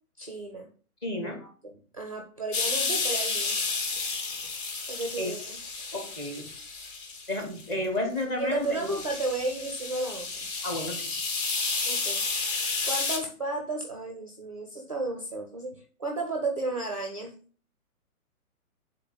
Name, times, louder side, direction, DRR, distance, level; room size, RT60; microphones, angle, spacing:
voice 1, 0.2-0.7 1.2-3.6 4.9-5.6 8.4-10.5 11.8-12.2 12.8-17.3, right 2 dB, 25° right, 3 dB, 0.4 m, -33 dB
voice 2, 1.0-1.4 5.2-5.4 5.9-6.5 7.3-9.0 10.6-11.1, left 1 dB, 15° left, 3 dB, 0.9 m, -32 dB
sound 1, 2.5-7.7 8.2-8.3 8.7-13.2, left 4 dB, 35° left, 1.5 m, -31 dB
7.9 x 3.8 x 3.9 m, 0.42 s
hypercardioid pair, 160°, 44 cm